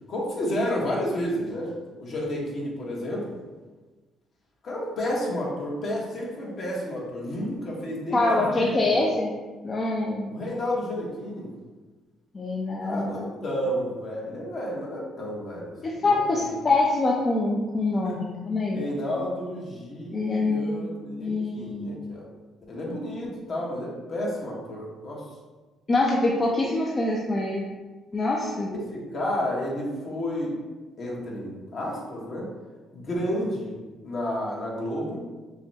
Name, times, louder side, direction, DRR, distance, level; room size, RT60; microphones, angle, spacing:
voice 1, 0.1-1.7 2.0-3.3 4.6-9.0 10.2-11.5 12.8-16.6 18.0-18.2 18.7-22.2 22.7-25.3 28.7-30.5 31.0-32.5 32.9-33.8 34.0-35.2, left 1 dB, 50° left, -3 dB, 1.2 m, -31 dB
voice 2, 8.1-9.3 9.6-10.3 12.3-13.3 15.8-18.8 20.1-20.8 21.2-21.9 25.9-27.6 28.1-28.7, left 2 dB, 30° left, -2 dB, 0.5 m, -25 dB
6.3 x 2.2 x 2.8 m, 1.3 s
cardioid pair, 105°, 0 cm